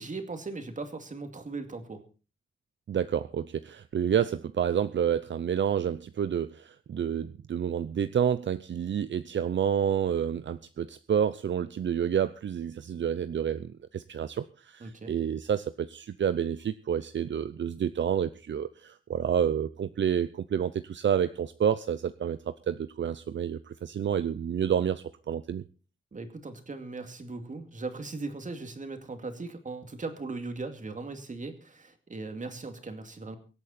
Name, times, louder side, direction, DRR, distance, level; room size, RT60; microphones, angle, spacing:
voice 1, 0.0-2.0 14.8-15.1 26.1-33.4, right 3 dB, 40° right, 7 dB, 2.4 m, -38 dB
voice 2, 2.9-25.6, right 8 dB, 65° right, 13 dB, 0.7 m, -29 dB
24.0 x 8.8 x 4.3 m, 0.35 s
wide cardioid pair, 140°, 21 cm